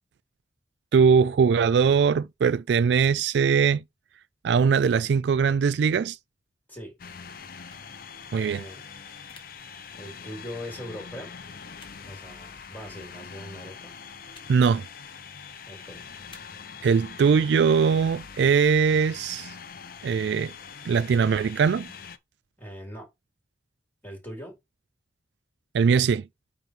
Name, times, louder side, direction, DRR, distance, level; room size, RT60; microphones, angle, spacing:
voice 1, 0.9-3.8 4.4-6.2 8.3-8.6 14.5-14.8 16.8-19.5 20.0-20.5 20.9-21.9 25.7-26.2, right 6 dB, 75° right, 0.3 m, -21 dB
sound 1, 7.0-22.2, left 6 dB, 55° left, 0.7 m, -43 dB
sound 2, 7.7-7.9 9.3-9.4 10.5-10.6 11.8-11.9 13.0-13.1 14.3-14.5 15.0-15.3 16.3-16.4, left 4 dB, 30° left, 1.6 m, -51 dB
voice 2, 8.3-8.9 9.9-11.3 12.0-13.9 15.7-16.0 22.6-23.1 24.0-24.6, equal, 10° left, 4.0 m, -41 dB
9.1 x 3.1 x 5.2 m
head